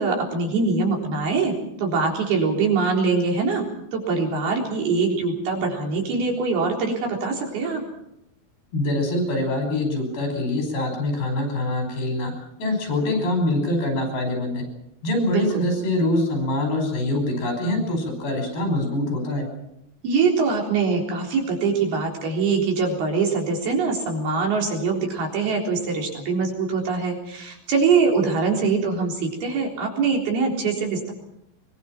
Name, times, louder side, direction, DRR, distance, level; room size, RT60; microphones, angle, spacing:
voice 1, 0.0-3.7 3.9-7.8 15.3-15.7 20.0-31.1, right 4 dB, 75° right, 1 dB, 5.7 m, -23 dB
voice 2, 8.7-12.3 12.6-14.6 15.0-19.4, left 1 dB, 85° left, 3 dB, 7.2 m, -24 dB
23.5 x 23.0 x 6.1 m, 0.80 s
omnidirectional pair, 4.4 m